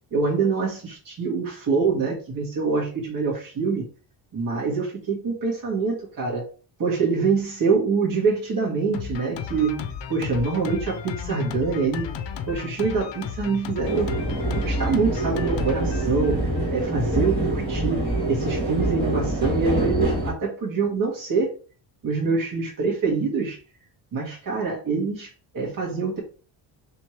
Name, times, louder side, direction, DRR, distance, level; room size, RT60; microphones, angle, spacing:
voice 1, 0.1-3.8 4.3-6.4 6.8-9.8 10.1-12.1 12.5-14.1 14.6-16.4 16.7-21.5 22.0-23.6 24.1-25.3 25.5-26.2, right 4 dB, 45° right, 1.7 m, -25 dB
Drum kit, 8.9-16.7, left 7 dB, 70° left, 0.7 m, -34 dB
sound 1, 13.8-20.3, right 1 dB, 20° right, 1.8 m, -25 dB
3.3 x 3.1 x 4.4 m
cardioid pair, 115°, 47 cm